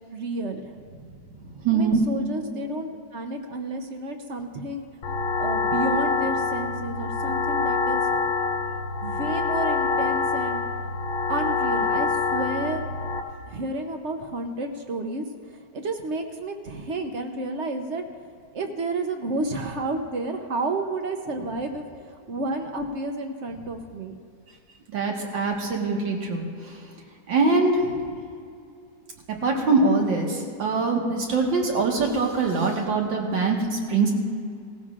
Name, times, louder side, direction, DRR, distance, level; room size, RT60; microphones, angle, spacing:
voice 1, 0.1-0.8 1.7-4.9 5.4-8.3 9.0-10.6 11.3-12.8 13.5-18.0 18.5-24.2, right 2 dB, 55° right, 5 dB, 0.8 m, -31 dB
voice 2, 1.6-2.0 24.9-26.7 27.3-27.9 29.4-34.1, right 3 dB, 80° right, 0 dB, 2.3 m, -23 dB
sound 1, 5.0-13.2, left 4 dB, 85° left, 1.6 m, -26 dB
18.5 x 14.5 x 2.5 m, 2.3 s
omnidirectional pair, 2.0 m